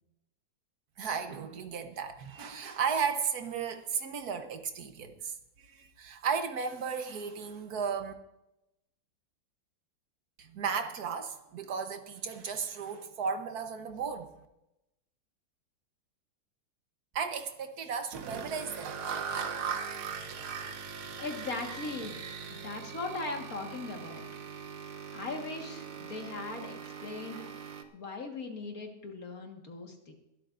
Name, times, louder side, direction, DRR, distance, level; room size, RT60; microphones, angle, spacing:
voice 1, 1.0-8.1 10.4-14.3 17.1-18.8, right 6 dB, 55° right, 1.4 m, -35 dB
sound 1, 18.1-27.8, right 6 dB, 75° right, 1.8 m, -40 dB
voice 2, 21.2-22.2 22.5-24.3 25.1-27.4 27.9-30.1, left 3 dB, 45° left, 1.9 m, -39 dB
22.0 x 12.0 x 2.6 m
omnidirectional pair, 2.3 m